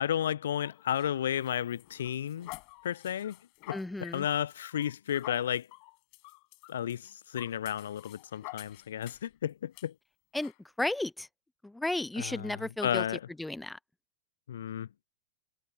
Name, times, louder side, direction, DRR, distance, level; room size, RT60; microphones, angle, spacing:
voice 1, 0.0-2.5 2.8-3.4 3.7-5.7 6.7-9.9 12.2-13.3 14.5-14.9, left 10 dB, 65° left, 0.5 m, -33 dB
sound 1, 0.6-9.3 9.7-9.9 10.4-10.6, left 32 dB, 45° left, 7.4 m, -49 dB
voice 2, 3.7-4.3 10.3-10.5 10.8-11.3 11.6-13.0 13.4-13.8, left 2 dB, 5° left, 0.5 m, -33 dB
figure-of-eight pair, 90°, 0 cm